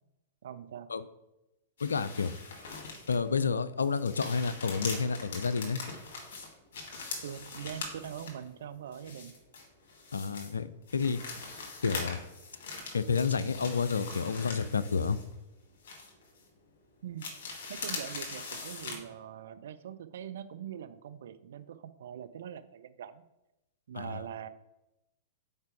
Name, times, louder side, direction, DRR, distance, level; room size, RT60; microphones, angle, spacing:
voice 1, 0.4-0.9 7.2-9.3 17.0-17.3 17.7-23.2 23.9-24.5, right 9 dB, 60° right, 11 dB, 0.4 m, -43 dB
voice 2, 1.8-2.3 3.1-5.8 10.1-11.2 11.8-12.2 12.9-15.2 23.9-24.2, left 5 dB, 70° left, 15 dB, 0.4 m, -30 dB
sound 1, 1.8-3.3 3.7-8.5 8.9-10.5 10.9-15.5 15.8-16.4 17.2-19.0, left 3 dB, 55° left, 1.8 m, -42 dB
5.6 x 4.6 x 4.9 m, 0.93 s
figure-of-eight pair, 100°, 0 cm